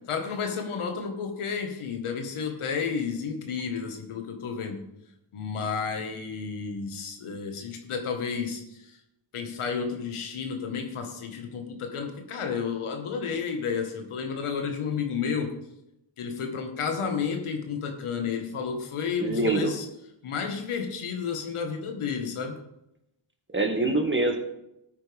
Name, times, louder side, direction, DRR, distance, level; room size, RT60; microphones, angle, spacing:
voice 1, 0.1-4.8 5.3-9.0 9.3-15.6 16.2-19.8 20.2-22.6, left 6 dB, 80° left, 4 dB, 1.8 m, -31 dB
voice 2, 19.2-19.7 23.5-24.4, right 2 dB, 25° right, 4 dB, 2.0 m, -24 dB
13.5 x 9.0 x 3.6 m, 0.84 s
cardioid pair, 60°, 49 cm